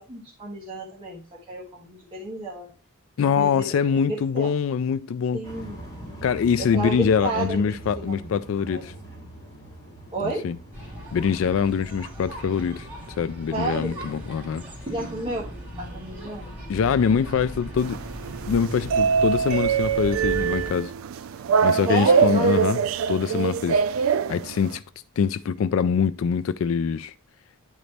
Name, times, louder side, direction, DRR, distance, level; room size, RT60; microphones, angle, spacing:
voice 1, 0.0-2.7 3.2-4.5 5.3-5.9 6.6-8.3 8.7-8.8 10.1-10.4 13.5-14.1 14.9-15.5 15.8-16.6 21.8-22.5, right 2 dB, 25° right, 1.4 m, -31 dB
voice 2, 3.2-5.4 6.2-8.9 10.2-10.6 11.1-12.9 13.2-14.6 16.7-18.0 18.5-20.9 21.6-22.8 23.1-24.8 25.2-27.1, left 6 dB, 70° left, 0.3 m, -24 dB
sound 1, 5.4-18.7, right 1 dB, 20° left, 2.4 m, -45 dB
sound 2, 10.7-20.7, equal, 10° right, 2.9 m, -38 dB
sound 3, 17.8-24.8, right 6 dB, 80° right, 0.3 m, -23 dB
10.0 x 4.0 x 3.3 m
head